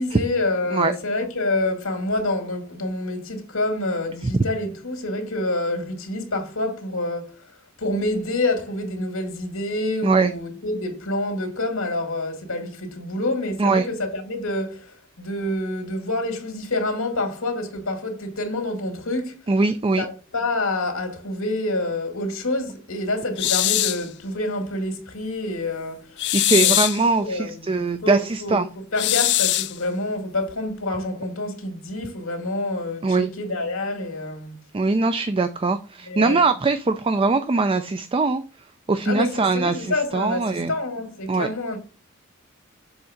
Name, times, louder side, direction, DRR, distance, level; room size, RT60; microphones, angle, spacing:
voice 1, 0.0-7.5 7.8-19.4 20.0-26.8 27.2-28.6 28.9-34.6 36.1-36.4 39.0-41.8, left 2 dB, 80° left, 2.3 m, -27 dB
voice 2, 19.5-20.1 26.3-28.7 33.0-33.3 34.7-38.4 38.9-40.7 41.3-41.5, right 3 dB, 25° right, 0.4 m, -21 dB
sound 1, 23.4-24.1 26.2-27.0 29.0-29.8, left 16 dB, 55° left, 0.3 m, -21 dB
7.1 x 3.7 x 6.4 m
head